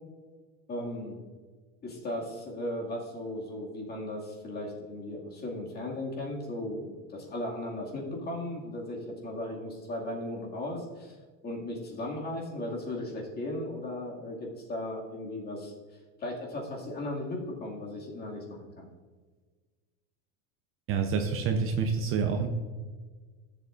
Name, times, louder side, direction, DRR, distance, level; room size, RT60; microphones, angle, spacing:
voice 1, 0.7-1.2 1.8-11.2 11.4-15.7 16.2-18.9, left 1 dB, 25° left, -2 dB, 2.2 m, -36 dB
voice 2, 20.9-22.5, right 5 dB, 35° right, 5 dB, 0.7 m, -27 dB
14.0 x 7.5 x 2.5 m, 1.4 s
supercardioid pair, 140°, 38 cm